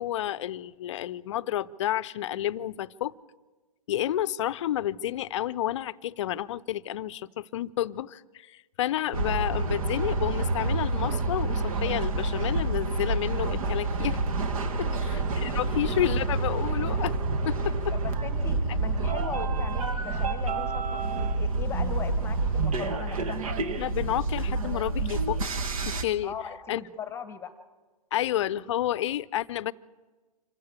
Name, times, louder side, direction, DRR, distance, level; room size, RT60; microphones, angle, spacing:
voice 1, 0.0-3.1 3.9-14.2 14.8-17.2 17.5-17.8 23.8-25.4 25.9-26.3 26.7-26.8 28.1-29.7, left 12 dB, 50° left, 17 dB, 0.6 m, -30 dB
sound 1, 9.1-26.0, right 3 dB, 60° right, 1.8 m, -28 dB
voice 2, 14.7-15.0 15.6-15.7 17.9-23.4 26.2-27.5, left 6 dB, 10° left, 11 dB, 1.2 m, -39 dB
26.0 x 15.0 x 7.1 m, 1.3 s
hypercardioid pair, 135°, 20 cm